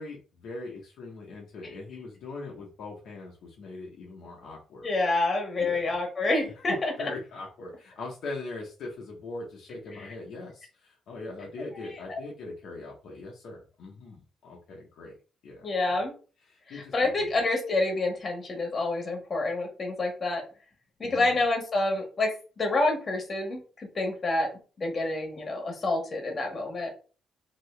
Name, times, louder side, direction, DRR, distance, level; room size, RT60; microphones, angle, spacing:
voice 1, 0.0-4.9 5.6-6.0 6.6-15.2 15.4-16.0 16.5-17.4 21.0-21.4, left 3 dB, 70° left, -2 dB, 0.9 m, -41 dB
voice 2, 4.8-6.9 11.6-11.7 15.6-16.1 16.7-20.4 21.0-24.5 24.8-26.9, left 2 dB, 40° left, 2 dB, 1.4 m, -28 dB
3.0 x 2.8 x 3.2 m, 0.36 s
cardioid pair, 90°, 0 cm